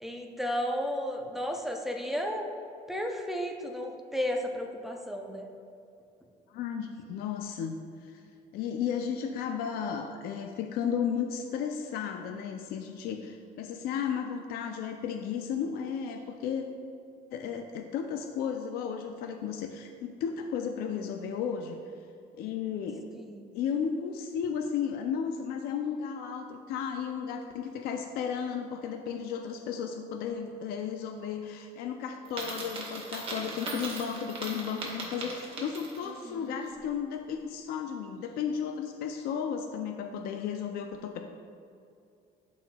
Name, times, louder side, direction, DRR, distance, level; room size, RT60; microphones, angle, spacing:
voice 1, 0.0-2.5 2.9-5.5 23.2-23.5 36.1-36.5, equal, ahead, 1 dB, 0.4 m, -33 dB
voice 2, 6.5-8.2 8.5-16.6 17.3-21.8 22.4-23.0 23.5-41.2, left 7 dB, 70° left, 5 dB, 0.4 m, -34 dB
Coin (dropping), 32.3-36.2, right 2 dB, 35° right, 1.0 m, -39 dB
11.0 x 4.2 x 2.2 m, 2.6 s
cardioid pair, 160°, 17 cm